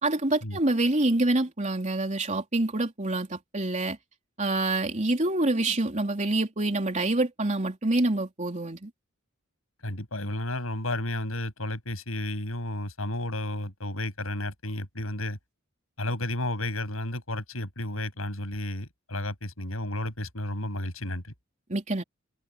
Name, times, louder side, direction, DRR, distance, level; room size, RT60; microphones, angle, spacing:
voice 1, 0.0-4.0 4.4-8.9 21.7-22.0, right 2 dB, 35° right, 3.5 m, -26 dB
voice 2, 9.8-15.4 16.0-21.2, left 1 dB, 85° left, 7.4 m, -32 dB
head